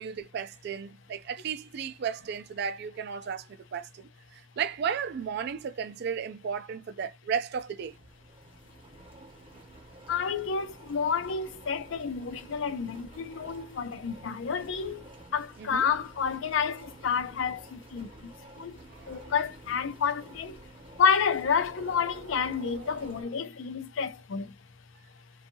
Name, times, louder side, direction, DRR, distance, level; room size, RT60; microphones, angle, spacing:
voice 1, 0.0-8.0 15.6-15.9 19.0-19.2 22.1-23.3, right 7 dB, 60° right, 0.3 m, -35 dB
sound 1, 7.8-23.2, right 2 dB, 30° right, 0.7 m, -51 dB
voice 2, 10.1-18.8 19.1-20.7 21.0-24.5, left 6 dB, 80° left, 0.4 m, -30 dB
2.6 x 2.3 x 2.6 m
head